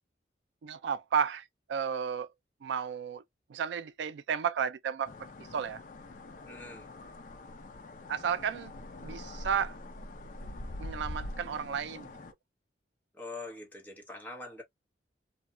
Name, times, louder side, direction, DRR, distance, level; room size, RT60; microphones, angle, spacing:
voice 1, 0.6-2.3 2.6-3.2 3.5-5.1 5.5-5.8 8.1-8.7 9.0-9.8 10.8-12.1, right 7 dB, 75° right, 0.3 m, -32 dB
sound 1, 5.1-12.3, left 1 dB, 45° left, 0.5 m, -44 dB
voice 2, 6.5-6.9 13.1-14.6, left 2 dB, 10° left, 0.9 m, -43 dB
2.7 x 2.3 x 2.5 m
head